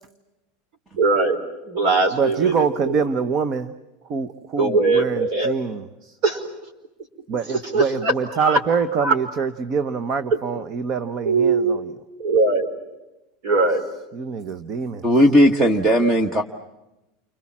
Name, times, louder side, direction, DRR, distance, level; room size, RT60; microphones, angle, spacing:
voice 1, 1.0-1.4 1.6-3.0 4.6-5.5 6.2-6.4 7.5-8.6 9.0-9.1 11.2-11.8 12.2-12.7 13.4-13.8, right 3 dB, 50° right, 3 dB, 4.9 m, -20 dB
voice 2, 2.1-3.7 4.1-6.2 7.3-11.9 14.1-15.0, right 5 dB, 30° right, 11 dB, 0.9 m, -25 dB
voice 3, 15.0-16.4, equal, 15° right, 6 dB, 1.3 m, -16 dB
29.5 x 25.0 x 7.4 m, 0.98 s
supercardioid pair, 165°, 0 cm